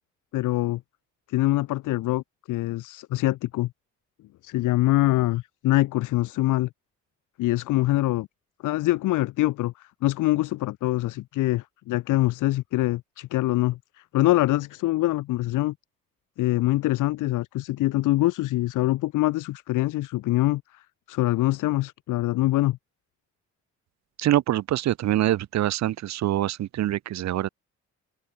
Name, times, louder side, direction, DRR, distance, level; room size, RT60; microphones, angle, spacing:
voice 1, 0.3-0.8 1.3-2.2 2.5-3.7 4.4-6.7 7.4-8.3 8.6-15.7 16.4-20.8 21.1-22.8, left 17 dB, 90° left, 1.3 m, -24 dB
voice 2, 24.2-27.5, right 13 dB, 65° right, 0.8 m, -24 dB
open air
cardioid pair, 90°, 30 cm